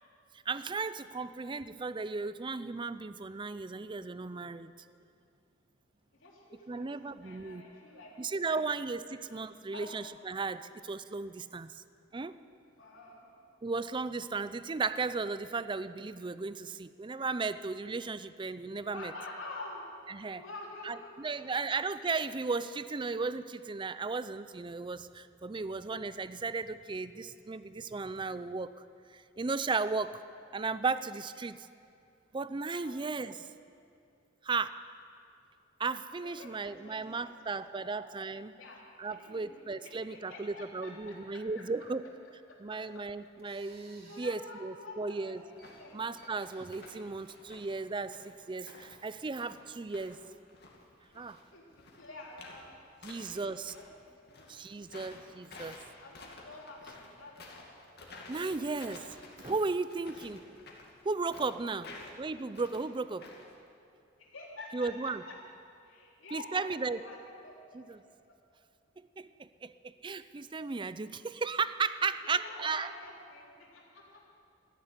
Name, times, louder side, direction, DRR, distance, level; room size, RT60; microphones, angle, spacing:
voice 1, 0.3-4.7 6.7-7.6 8.2-11.8 12.1-12.4 13.6-19.1 20.1-20.4 20.8-28.7 29.1-30.2 30.5-31.7 32.3-33.5 34.4-34.8 35.8-38.6 39.0-42.0 42.6-45.4 45.9-50.2 51.1-51.4 53.0-53.8 54.5-55.8 58.3-59.1 59.4-60.4 61.0-61.9 62.2-63.3 64.7-65.2 66.3-67.0 67.7-68.0 69.0-72.9, right 4 dB, 25° right, 14 dB, 0.4 m, -35 dB
voice 2, 6.1-8.6 9.1-9.2 9.7-9.9 12.8-13.3 18.7-19.8 20.3-21.5 32.8-33.0 36.2-37.4 37.7-38.0 38.6-38.8 39.1-41.6 42.7-42.8 44.0-46.1 51.2-51.3 51.5-52.7 53.3-54.5 54.9-55.0 56.0-57.7 61.8-62.1 64.2-65.3 65.9-67.5 67.9-68.0 72.2-74.2, left 2 dB, 85° left, -3 dB, 3.6 m, -48 dB
sound 1, 42.6-48.3, right 2 dB, 50° right, 2.8 m, -62 dB
sound 2, 45.5-45.8 46.1-47.0 47.3-50.2 50.5-53.9 54.2-63.6, left 3 dB, 55° left, 2.4 m, -51 dB
14.0 x 10.5 x 9.7 m, 2.5 s
head